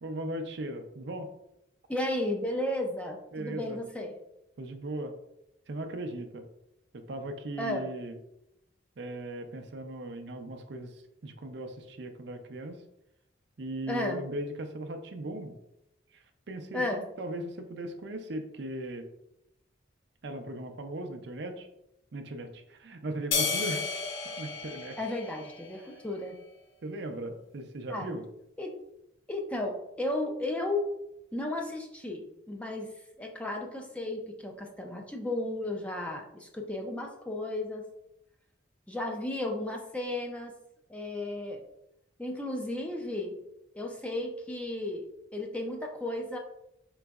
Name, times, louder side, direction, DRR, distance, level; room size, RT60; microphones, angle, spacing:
voice 1, 0.0-1.3 3.3-3.8 4.6-5.1 5.7-6.4 6.9-8.2 9.0-12.8 13.6-15.5 16.1-19.1 20.2-21.7 22.1-24.0 24.4-25.0 26.8-28.2, right 1 dB, 60° right, 6 dB, 0.5 m, -38 dB
voice 2, 1.9-4.1 7.6-7.9 13.9-14.2 16.7-17.0 25.0-26.4 27.9-28.2 28.6-28.7 29.3-30.9 31.3-32.9 33.2-37.9 38.9-40.5 40.9-41.6 42.2-43.3 43.7-46.4, left 1 dB, 5° left, 1 dB, 0.4 m, -34 dB
sound 1, 23.3-25.9, left 4 dB, 85° left, 0.8 m, -32 dB
4.3 x 3.9 x 2.3 m, 0.84 s
head